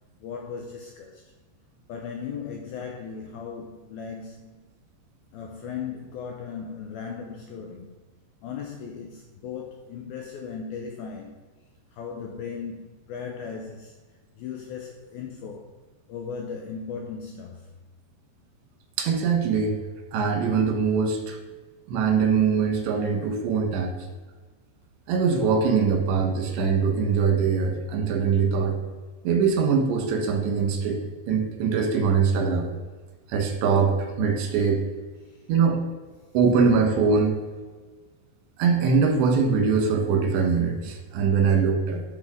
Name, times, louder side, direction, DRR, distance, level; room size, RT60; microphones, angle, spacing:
voice 1, 0.2-1.2 1.9-4.6 5.3-7.9 8.4-11.5 11.9-14.0 14.4-15.7 16.1-17.7 35.2-35.4, left 6 dB, 85° left, 2 dB, 2.2 m, -37 dB
voice 2, 19.0-19.8 20.1-21.4 21.9-23.9 25.1-28.8 29.3-31.0 31.3-32.7 33.3-34.8 35.5-35.8 36.4-37.4 38.6-42.0, right 5 dB, 80° right, 3 dB, 3.5 m, -22 dB
11.5 x 6.2 x 3.7 m, 1.4 s
omnidirectional pair, 5.1 m